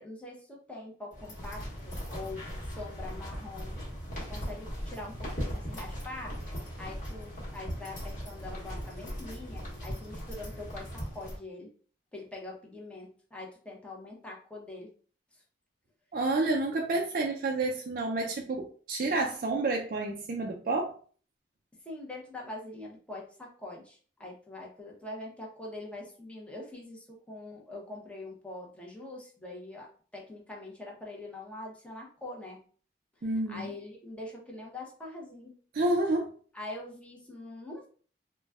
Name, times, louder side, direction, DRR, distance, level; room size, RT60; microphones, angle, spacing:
voice 1, 0.0-3.8 4.3-6.4 6.8-11.7 12.1-14.9 15.3-15.4 21.8-29.9 30.1-32.6 33.5-35.5 36.5-37.9, left 2 dB, 5° left, -2 dB, 0.8 m, -43 dB
sound 1, 1.1-11.4, equal, 45° left, 1.3 m, -39 dB
voice 2, 16.1-20.9 33.2-33.7 35.7-36.3, right 2 dB, 55° right, 0 dB, 0.4 m, -29 dB
3.9 x 2.2 x 2.3 m, 0.43 s
head